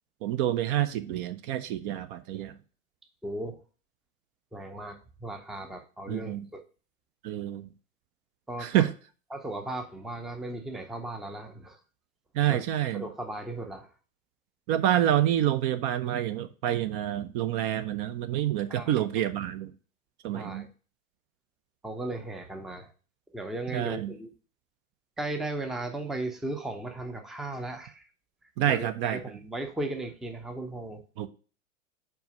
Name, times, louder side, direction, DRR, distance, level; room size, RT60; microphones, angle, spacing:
voice 1, 0.2-2.5 6.1-6.5 7.2-7.7 8.6-8.9 12.3-13.0 14.7-19.7 20.2-20.7 23.7-24.1 28.6-29.2 31.2-31.3, right 12 dB, 40° right, 0.6 m, -27 dB
voice 2, 3.2-3.6 4.5-6.6 8.5-8.7 9.3-11.8 12.5-12.6 12.9-13.9 18.7-18.9 20.3-20.7 21.8-22.9 23.3-24.3 25.2-28.1 28.7-31.0, right 2 dB, ahead, 0.6 m, -36 dB
4.8 x 4.7 x 5.2 m
hypercardioid pair, 100°, 41 cm